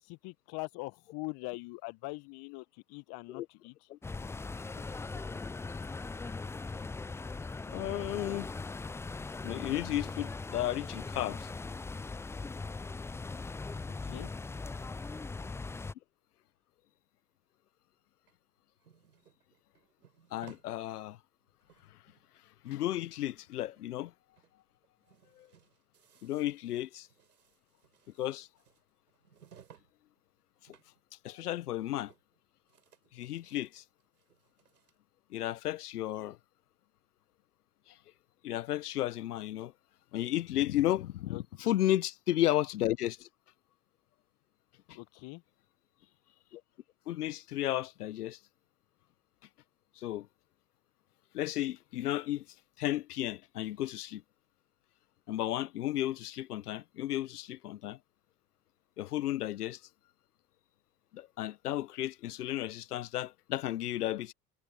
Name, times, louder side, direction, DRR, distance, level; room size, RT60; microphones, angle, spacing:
voice 1, 0.0-3.7 14.0-14.3 14.7-14.8 41.3-41.7 44.9-45.4, left 26 dB, 55° left, 1.7 m, -43 dB
sound 1, 4.0-15.9, left 3 dB, 5° left, 0.4 m, -40 dB
voice 2, 7.7-8.5 9.4-11.5 20.3-21.2 22.6-24.1 25.4-25.5 26.2-27.1 28.2-28.5 31.2-32.1 33.1-33.8 35.3-36.4 38.4-39.7 40.1-43.3 44.9-45.0 46.5-46.6 47.1-48.4 50.0-50.3 51.3-52.4 52.8-54.2 55.3-58.0 59.0-59.8 61.1-64.3, left 14 dB, 75° left, 1.2 m, -33 dB
sound 2, 18.3-20.7 21.1-21.2 21.5-22.4 22.6-24.1 24.3-24.5 24.8-29.9 30.2-31.0 31.3-31.4 31.7-32.4 32.7-35.0, right 8 dB, 80° right, 6.9 m, -62 dB
figure-of-eight pair, 70°, 46 cm